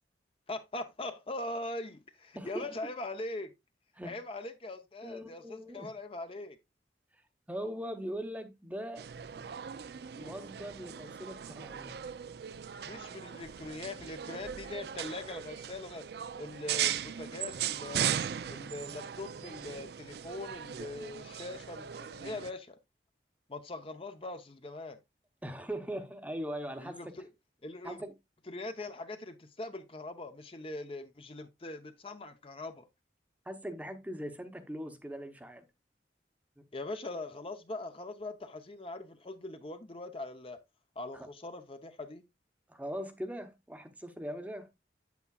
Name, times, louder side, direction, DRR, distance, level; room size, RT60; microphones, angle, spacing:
voice 1, 0.5-3.5 4.0-6.6 12.8-16.1 16.4-18.2 18.5-22.8 23.5-25.0 26.8-27.3 27.6-28.0 28.5-32.9 36.7-40.6 41.0-42.2, left 2 dB, 30° left, 0.7 m, -41 dB
voice 2, 2.3-2.7 3.9-4.2 5.0-5.9 7.5-9.1 9.3-9.5 10.2-12.0 25.4-27.2 27.8-28.1 33.5-35.7 41.1-41.3 42.7-44.7, equal, 10° right, 0.8 m, -40 dB
sound 1, 9.0-22.5, right 9 dB, 60° right, 0.4 m, -38 dB
8.3 x 8.2 x 2.3 m
head